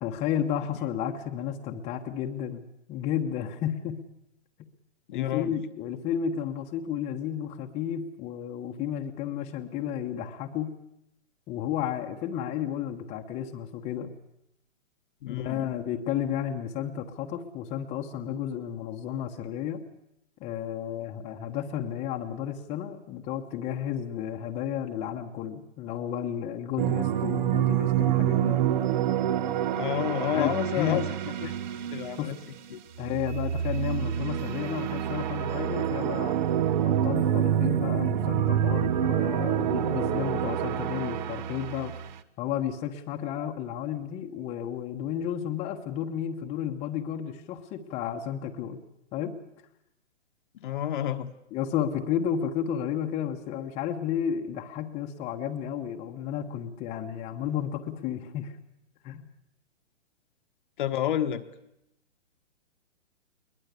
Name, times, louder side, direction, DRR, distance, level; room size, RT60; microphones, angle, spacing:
voice 1, 0.0-4.0 5.1-10.7 11.5-14.1 15.3-19.8 20.4-28.6 30.3-31.0 32.2-32.3 33.0-36.4 36.8-41.9 42.4-48.8 49.1-49.4 51.5-58.6 59.0-59.3, left 9 dB, 15° left, 2 dB, 1.1 m, -32 dB
voice 2, 5.1-5.5 15.2-15.8 29.8-31.1 31.4-31.5 31.9-32.4 32.7-32.8 50.5-51.3 60.8-61.4, left 11 dB, 40° left, 8 dB, 1.3 m, -30 dB
sound 1, 26.8-32.6 33.0-42.2, right 10 dB, 40° right, 1.0 m, -27 dB
21.5 x 20.0 x 8.3 m, 0.82 s
hypercardioid pair, 150°, 38 cm